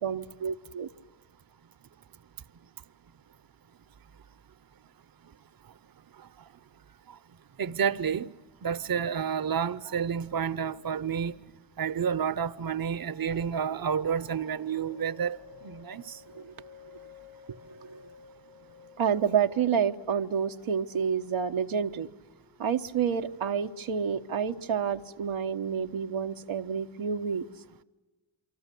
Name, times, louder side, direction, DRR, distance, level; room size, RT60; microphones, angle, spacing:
voice 1, 0.0-0.9 16.3-16.5 17.9-18.0 19.0-22.1 22.6-27.4, right 7 dB, 85° right, 1.1 m, -29 dB
voice 2, 7.6-8.3 8.6-11.3 11.8-15.4 15.6-16.2, right 7 dB, 50° right, 0.9 m, -30 dB
sound 1, 12.8-25.6, left 6 dB, 60° left, 3.4 m, -55 dB
28.5 x 24.0 x 8.3 m
cardioid pair, 50°, 47 cm